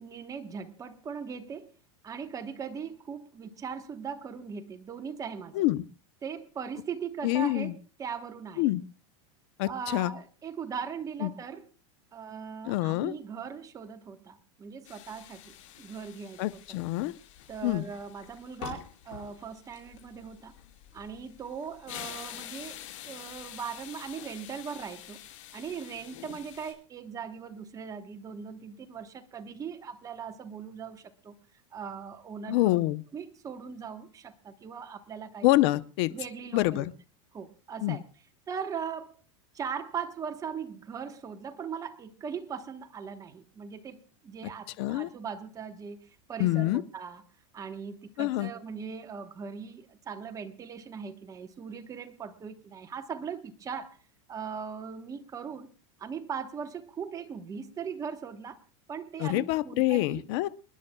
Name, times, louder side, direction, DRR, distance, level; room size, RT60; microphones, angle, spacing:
voice 1, 0.0-1.7 2.0-5.7 6.2-8.7 9.6-11.7 12.1-16.8 17.5-20.5 20.9-25.2 25.5-31.4 31.7-32.8 33.1-35.6 36.1-36.9 37.3-38.0 38.5-39.2 39.5-47.2 47.5-54.0 54.3-55.7 56.0-58.6 58.9-60.2, right 6 dB, 20° right, 7 dB, 1.1 m, -39 dB
voice 2, 7.2-7.7 8.6-8.8 9.6-10.1 11.2-11.3 12.7-13.1 16.4-17.1 17.6-17.8 32.5-33.0 35.4-36.1 36.5-36.9 37.8-38.0 44.8-45.1 46.4-46.8 48.2-48.5 59.2-60.5, left 17 dB, 60° left, 16 dB, 0.7 m, -26 dB
sound 1, 14.8-26.7, left 12 dB, 80° left, 5.0 m, -47 dB
28.5 x 10.5 x 2.3 m, 0.34 s
supercardioid pair, 135°, 16 cm